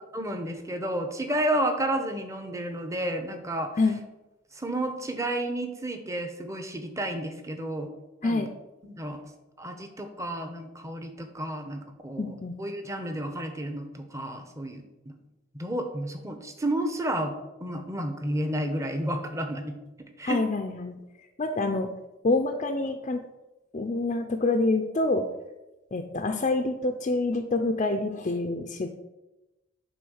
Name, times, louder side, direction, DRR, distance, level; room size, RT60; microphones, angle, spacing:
voice 1, 0.1-3.7 4.5-7.9 8.2-8.4 8.9-9.2 9.6-15.2 15.5-17.3 17.6-19.8 20.2-20.4, right 1 dB, 15° right, 5 dB, 0.9 m, -31 dB
voice 2, 12.2-12.6 20.2-21.0 21.4-21.9 22.2-23.2 23.7-25.3 25.9-28.9, left 2 dB, 35° left, 5 dB, 0.5 m, -26 dB
10.5 x 3.7 x 6.4 m, 1.0 s
head